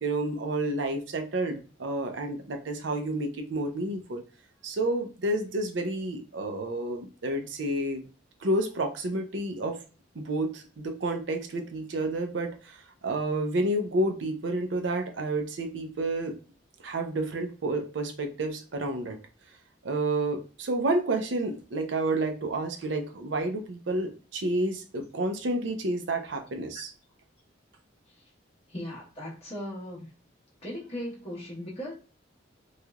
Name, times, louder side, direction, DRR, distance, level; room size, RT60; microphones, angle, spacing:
voice 1, 0.0-4.2 4.6-8.1 8.4-9.8 10.1-16.3 16.8-19.2 19.8-26.9, right 2 dB, 75° right, 5 dB, 0.5 m, -30 dB
voice 2, 28.7-30.1 30.6-31.9, equal, 30° left, -5 dB, 1.2 m, -37 dB
3.1 x 2.8 x 2.4 m, 0.35 s
head